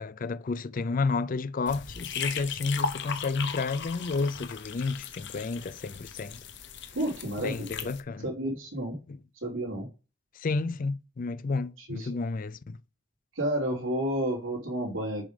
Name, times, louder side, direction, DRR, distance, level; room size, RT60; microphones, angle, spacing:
voice 1, 0.0-6.4 7.4-8.2 9.1-9.2 10.4-12.8, left 4 dB, 45° left, 0.4 m, -31 dB
sound 1, 1.7-8.0, left 6 dB, 60° left, 1.0 m, -37 dB
voice 2, 6.9-7.9 8.2-9.0 9.4-9.9 11.8-12.1 13.3-15.3, right 1 dB, 85° right, 2.8 m, -31 dB
7.4 x 5.0 x 5.0 m
head